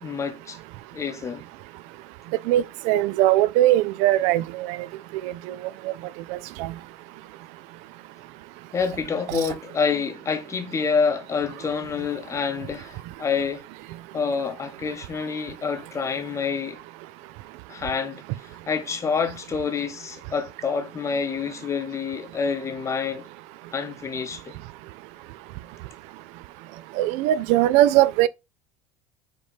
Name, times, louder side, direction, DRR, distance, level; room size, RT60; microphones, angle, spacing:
voice 1, 0.0-0.6 0.9-1.4 8.7-13.6 14.1-16.8 17.7-23.3 23.7-24.5, left 5 dB, 25° left, 0.8 m, -27 dB
voice 2, 2.5-4.8 5.2-5.6 5.9-6.0 6.3-6.7 9.3-9.4 27.0-28.3, right 14 dB, 70° right, 0.4 m, -20 dB
5.0 x 2.8 x 3.1 m
supercardioid pair, 95°, 12 cm